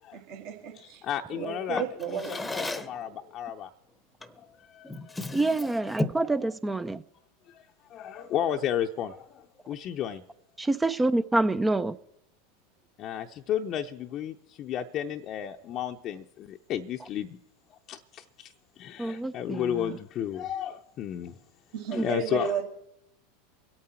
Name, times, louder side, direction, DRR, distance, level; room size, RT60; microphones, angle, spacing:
voice 1, 0.1-1.0 1.3-2.3 2.6-2.7 21.7-22.6, right 6 dB, 60° right, 2.1 m, -33 dB
voice 2, 0.7-3.7 4.4-5.4 7.5-7.6 7.9-10.2 13.0-17.4 17.7-21.4 21.9-22.5, left 10 dB, 45° left, 0.7 m, -33 dB
Drawer open or close, 1.7-3.0 4.2-4.4 4.8-6.3, left 2 dB, 10° left, 0.9 m, -34 dB
voice 3, 5.3-7.0 10.6-12.0 19.0-20.0 21.9-22.1, right 2 dB, 10° right, 0.5 m, -27 dB
24.5 x 8.8 x 4.4 m
hypercardioid pair, 90°, 0 cm